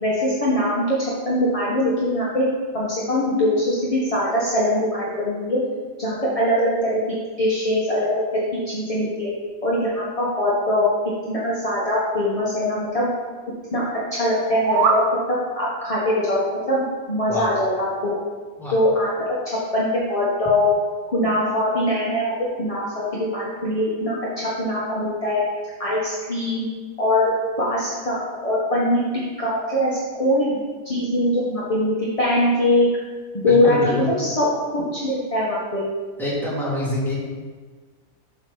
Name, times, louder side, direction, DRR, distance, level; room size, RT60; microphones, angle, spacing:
voice 1, 0.0-1.0 1.2-2.5 2.7-5.6 6.0-7.0 7.4-8.4 8.7-9.3 9.6-10.8 11.2-13.1 13.7-13.8 14.1-15.0 15.3-18.2 18.7-20.7 21.1-22.3 22.6-25.4 25.8-26.7 27.0-27.3 27.6-29.0 29.4-30.5 30.8-32.9 33.3-35.9, left 1 dB, 25° left, -7 dB, 1.3 m, -22 dB
sound 1, 14.4-15.1, right 5 dB, 80° right, 1.3 m, -21 dB
voice 2, 33.5-34.1 36.2-37.3, left 1 dB, ahead, -6 dB, 2.3 m, -26 dB
7.6 x 6.3 x 4.0 m, 1.4 s
omnidirectional pair, 1.6 m